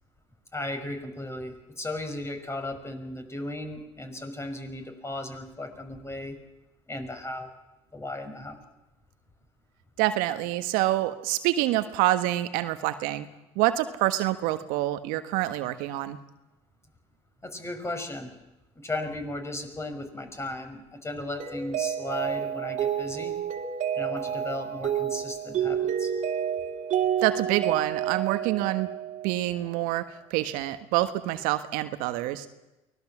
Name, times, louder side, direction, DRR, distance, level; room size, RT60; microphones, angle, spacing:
voice 1, 0.5-6.4 6.9-7.5 7.9-8.6 17.4-18.3 18.8-23.3 23.9-26.1, left 1 dB, 20° left, 5 dB, 6.1 m, -36 dB
voice 2, 10.0-13.3 13.5-16.2 27.2-28.9 29.2-32.5, right 15 dB, 75° right, 10 dB, 1.4 m, -27 dB
Mallet percussion, 21.4-29.6, right 9 dB, 55° right, 2.6 m, -29 dB
24.0 x 19.0 x 7.3 m, 0.98 s
hypercardioid pair, 70°, 15 cm